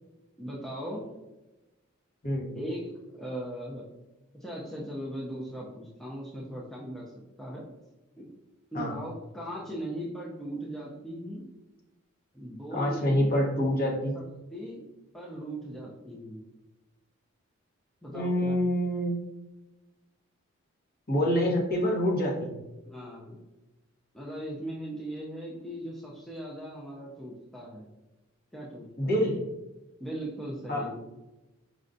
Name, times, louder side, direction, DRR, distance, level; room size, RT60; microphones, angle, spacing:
voice 1, 0.4-1.1 2.5-3.8 4.3-7.0 7.4-7.6 8.2-8.3 8.7-11.4 12.3-13.3 14.1-14.2 14.5-14.8 15.1-16.4 18.0-18.8 22.8-23.4 24.1-27.9 28.5-29.2 30.0-30.9, right 1 dB, ahead, -5 dB, 0.4 m, -38 dB
voice 2, 12.7-14.2 18.1-19.2 21.1-22.6 29.0-29.4 30.7-30.9, equal, 45° left, -3 dB, 0.9 m, -26 dB
4.9 x 2.2 x 2.6 m, 1.0 s
head